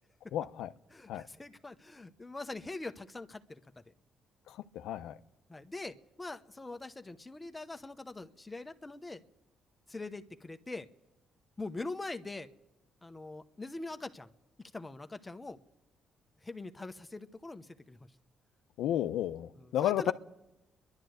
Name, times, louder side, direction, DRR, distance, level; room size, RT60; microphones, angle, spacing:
voice 1, 0.3-0.7 1.1-1.2 4.5-5.2 18.8-20.1, left 12 dB, 85° left, 10 dB, 0.6 m, -32 dB
voice 2, 0.9-3.6 5.5-9.2 9.9-10.9 11.6-12.5 13.0-14.3 14.7-15.6 16.4-18.1 19.6-20.1, left 2 dB, 20° left, 9 dB, 0.9 m, -43 dB
29.0 x 11.5 x 7.9 m, 0.97 s
cardioid pair, 90°, 0 cm